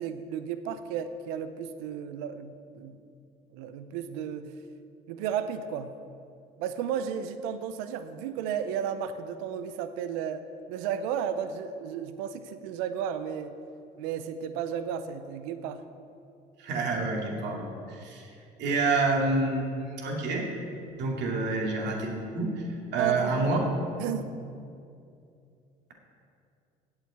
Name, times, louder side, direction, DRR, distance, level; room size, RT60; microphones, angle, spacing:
voice 1, 0.0-3.0 3.5-4.5 5.1-5.9 6.6-10.4 10.7-13.5 14.0-15.8 23.0-23.5 24.0-24.4, right 8 dB, 85° right, 10 dB, 0.6 m, -33 dB
voice 2, 16.6-18.3 18.6-20.4 21.0-22.6 22.9-23.6, right 3 dB, 65° right, -1 dB, 2.4 m, -28 dB
8.8 x 7.0 x 8.3 m, 2.5 s
supercardioid pair, 70°, 19 cm